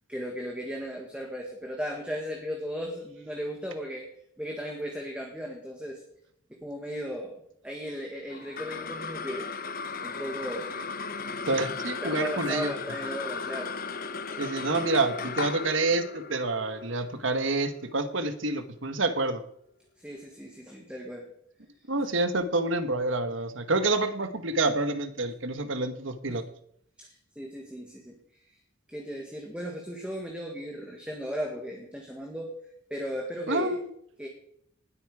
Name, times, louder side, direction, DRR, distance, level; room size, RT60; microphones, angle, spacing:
voice 1, 0.1-4.1 4.4-6.0 6.5-9.5 10.0-10.7 12.0-13.7 20.0-21.3 26.3-26.4 27.0-28.1 28.9-32.5 32.9-33.8 34.2-34.3, equal, 5° right, 0 dB, 1.7 m, -36 dB
sound 1, 8.3-18.9, left 5 dB, 45° left, 0.9 m, -36 dB
voice 2, 11.5-12.7 14.4-19.4 21.9-26.4 33.5-33.9, right 2 dB, 80° right, 9 dB, 1.4 m, -28 dB
19.5 x 8.4 x 4.8 m, 0.70 s
head